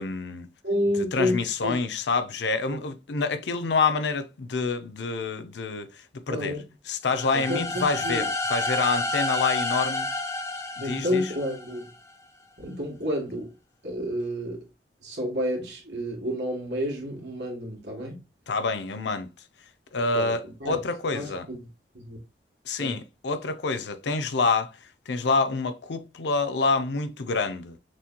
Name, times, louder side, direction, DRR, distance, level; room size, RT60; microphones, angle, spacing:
voice 1, 0.0-0.5 1.1-6.6 6.9-10.1 10.8-11.3 18.5-19.3 19.9-21.5 22.7-24.7 25.1-27.8, left 4 dB, 85° left, 0.6 m, -27 dB
voice 2, 0.6-1.8 2.7-2.8 6.3-6.6 7.3-8.2 10.8-11.9 12.6-13.5 13.8-14.6 15.0-18.2 20.1-20.8 21.1-21.7 21.9-22.2 22.7-23.0, equal, 80° right, 1.9 m, -30 dB
sound 1, 7.1-11.9, left 2 dB, 15° left, 0.4 m, -30 dB
6.0 x 2.9 x 2.2 m
head